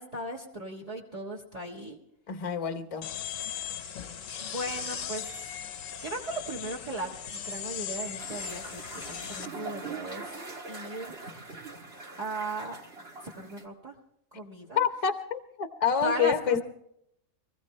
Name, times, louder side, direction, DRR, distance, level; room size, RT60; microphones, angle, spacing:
voice 1, 0.0-2.0 3.4-3.5 4.4-5.3 6.0-10.2 10.7-11.2 12.2-12.8 13.2-13.9 14.3-14.8 16.0-16.6, right 1 dB, 30° right, 0 dB, 1.5 m, -37 dB
voice 2, 2.3-3.1 14.7-16.6, left 7 dB, 30° left, 8 dB, 0.8 m, -27 dB
sound 1, 3.0-9.5, left 8 dB, 70° left, 1.1 m, -38 dB
sound 2, 8.2-13.6, right 3 dB, 50° right, 1.7 m, -42 dB
23.5 x 15.5 x 3.2 m, 0.75 s
omnidirectional pair, 1.4 m